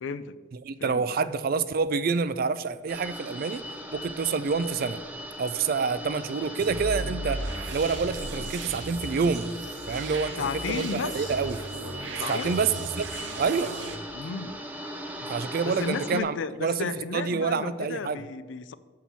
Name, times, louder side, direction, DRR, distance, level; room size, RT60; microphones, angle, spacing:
voice 1, 0.0-0.4 0.8-1.1 10.4-11.3 12.2-12.6 14.1-14.6 15.6-18.7, left 5 dB, 75° left, 14 dB, 0.4 m, -33 dB
voice 2, 0.5-3.6 3.9-5.0 5.4-9.5 9.9-11.6 12.3-13.1 13.4-13.8 15.3-16.3 16.6-18.2, right 5 dB, 50° right, 14 dB, 0.4 m, -27 dB
sound 1, 2.9-16.2, equal, 10° right, 0.7 m, -39 dB
sound 2, 6.6-14.0, right 2 dB, 70° right, 0.9 m, -36 dB
7.5 x 4.3 x 6.9 m, 1.4 s
head